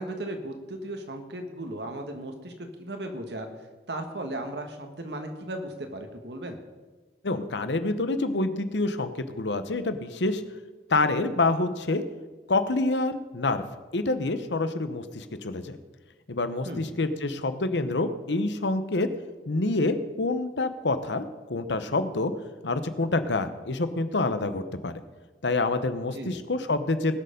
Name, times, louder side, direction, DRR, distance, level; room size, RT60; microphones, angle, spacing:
voice 1, 0.0-3.5 3.9-6.6 16.6-16.9 26.1-26.4, right 1 dB, 75° right, 5 dB, 1.7 m, -36 dB
voice 2, 7.2-10.4 10.9-12.0 12.5-13.6 13.9-15.8 16.3-19.1 19.5-22.3 22.6-25.0 25.4-27.2, left 2 dB, 85° left, 10 dB, 1.0 m, -27 dB
19.5 x 6.9 x 5.2 m, 1.3 s
head